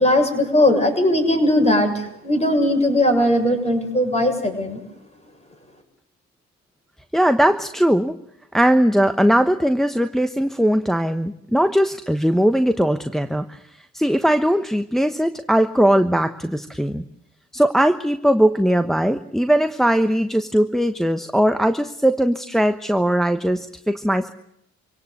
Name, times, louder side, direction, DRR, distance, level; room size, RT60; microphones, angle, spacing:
voice 1, 0.0-4.8, left 1 dB, 20° left, 5 dB, 7.2 m, -19 dB
voice 2, 7.1-8.2 8.5-17.0 17.5-24.3, equal, ahead, 8 dB, 1.1 m, -19 dB
26.0 x 17.5 x 8.1 m, 0.77 s
cardioid pair, 90°, 30 cm